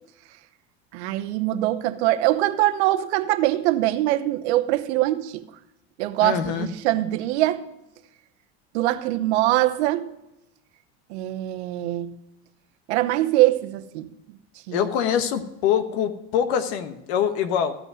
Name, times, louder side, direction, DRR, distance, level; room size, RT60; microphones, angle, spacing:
voice 1, 0.9-5.4 6.0-7.7 8.7-10.1 11.1-12.1 12.9-14.1 14.7-14.8, right 15 dB, 80° right, 0.9 m, -23 dB
voice 2, 6.2-6.7 14.7-17.8, left 8 dB, 75° left, 1.2 m, -24 dB
15.0 x 5.4 x 6.2 m
supercardioid pair, 105°, 33 cm